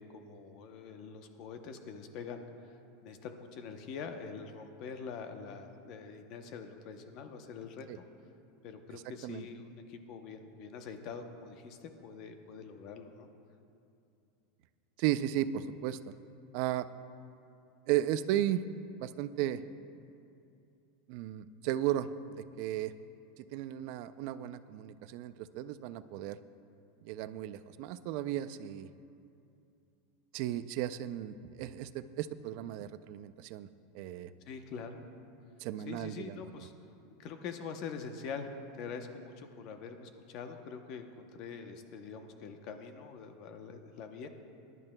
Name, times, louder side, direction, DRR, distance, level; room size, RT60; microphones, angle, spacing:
voice 1, 0.0-2.8 3.0-8.0 8.6-13.3 34.5-35.1 35.9-36.7 37.2-38.5 38.7-44.3, left 5 dB, 40° left, 6 dB, 0.7 m, -44 dB
voice 2, 15.0-16.0 16.5-16.9 17.9-18.6 19.0-19.6 21.1-22.1 22.6-22.9 23.4-26.4 27.0-28.9 30.3-33.7 33.9-34.3 35.6-36.4, right 12 dB, 45° right, 12 dB, 0.3 m, -34 dB
20.5 x 10.5 x 2.2 m, 2.6 s
supercardioid pair, 170°, 0 cm